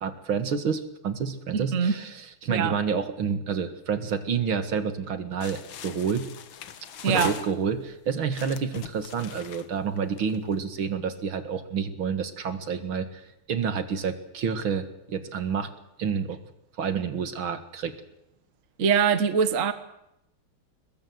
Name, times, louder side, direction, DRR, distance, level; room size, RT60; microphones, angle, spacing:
voice 1, 0.0-6.3 7.1-13.2 13.5-15.7 16.0-16.4 16.8-17.9, right 6 dB, 70° right, 10 dB, 2.6 m, -29 dB
voice 2, 1.5-1.9 2.5-2.7 7.0-7.3 18.8-19.7, right 6 dB, 40° right, 11 dB, 1.5 m, -23 dB
sound 1, 5.4-7.9 8.3-10.5, left 9 dB, 65° left, 1.9 m, -40 dB
22.5 x 21.0 x 7.9 m, 0.82 s
omnidirectional pair, 2.4 m